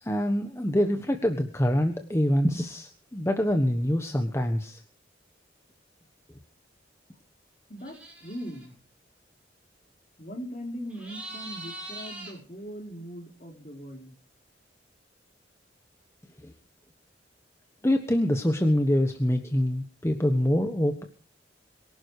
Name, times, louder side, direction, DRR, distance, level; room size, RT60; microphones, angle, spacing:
voice 1, 0.0-4.8 16.4-16.5 17.8-21.0, equal, 15° left, 5 dB, 1.3 m, -25 dB
voice 2, 7.7-8.7 10.2-14.2, equal, 40° left, 3 dB, 4.2 m, -40 dB
sound 1, 7.8-8.6 10.9-12.3, right 2 dB, 5° right, 7.5 m, -41 dB
23.5 x 12.0 x 4.9 m, 0.43 s
head